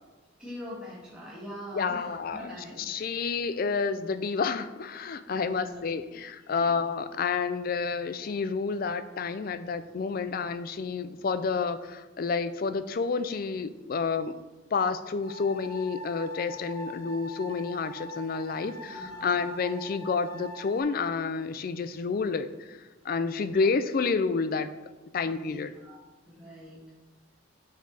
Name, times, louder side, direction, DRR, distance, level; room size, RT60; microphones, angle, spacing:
voice 1, 0.4-3.5 5.3-5.8 6.5-6.8 18.8-19.5 23.4-23.7 25.2-26.8, left 1 dB, 5° right, -7 dB, 1.6 m, -44 dB
voice 2, 1.7-14.4 14.7-22.8 23.0-24.7 25.1-25.7, left 5 dB, 45° left, 11 dB, 0.3 m, -29 dB
sound 1, 15.2-20.8, left 1 dB, 90° left, 0.9 m, -42 dB
6.4 x 4.7 x 4.0 m, 1.2 s
head